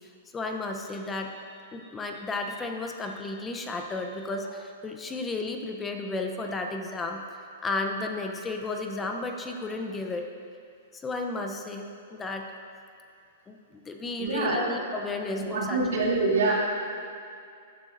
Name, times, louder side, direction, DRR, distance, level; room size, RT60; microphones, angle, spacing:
voice 1, 0.3-1.3 1.7-7.2 7.6-10.3 10.9-12.5 13.5-13.6 13.8-15.8, left 3 dB, 15° left, 3 dB, 0.7 m, -33 dB
voice 2, 14.2-14.7 15.5-16.5, right 3 dB, 80° right, -5 dB, 2.9 m, -25 dB
15.5 x 9.9 x 2.6 m, 2.4 s
hypercardioid pair, 135°, 0 cm